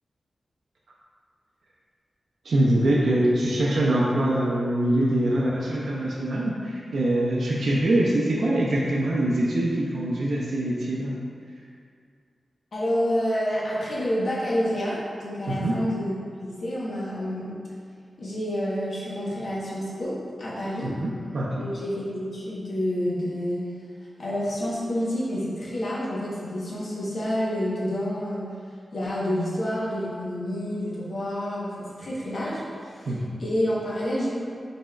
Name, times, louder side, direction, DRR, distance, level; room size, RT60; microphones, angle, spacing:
voice 1, 2.4-11.1 15.5-15.8 20.8-21.7 33.1-33.3, right 1 dB, 75° right, -5 dB, 0.5 m, -24 dB
voice 2, 12.7-16.1 16.4-17.6 18.2-20.9 21.6-23.7 24.2-28.5 28.9-32.6 32.9-33.1 33.4-34.3, equal, 60° left, -7 dB, 1.1 m, -28 dB
5.3 x 4.1 x 2.4 m, 2.2 s
wide cardioid pair, 170°, 0 cm